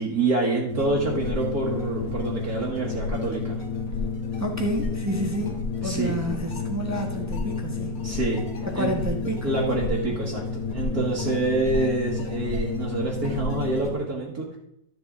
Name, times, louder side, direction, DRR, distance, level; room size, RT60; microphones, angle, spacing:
voice 1, 0.0-3.6 5.8-6.1 8.0-9.0 9.4-10.4 10.7-14.6, right 3 dB, 55° right, -3 dB, 1.8 m, -26 dB
sound 1, 0.7-14.0, left 4 dB, 50° left, 1.6 m, -30 dB
voice 2, 4.4-7.9 8.6-9.5, right 1 dB, 10° right, 1 dB, 0.8 m, -29 dB
12.5 x 7.0 x 3.6 m, 0.81 s
omnidirectional pair, 2.1 m